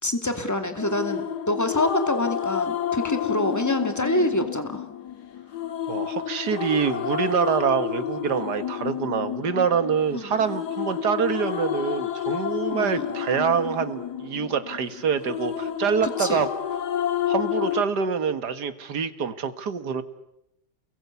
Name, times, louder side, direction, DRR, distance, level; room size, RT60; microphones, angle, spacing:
voice 1, 0.0-4.9 10.1-10.4 12.7-13.1 16.0-16.4, left 1 dB, 10° left, 7 dB, 2.5 m, -26 dB
sound 1, 0.8-17.8, left 10 dB, 80° left, 2.1 m, -30 dB
voice 2, 5.9-16.5 17.3-20.0, right 6 dB, 85° right, 11 dB, 2.1 m, -25 dB
29.5 x 22.5 x 8.3 m, 0.82 s
omnidirectional pair, 1.7 m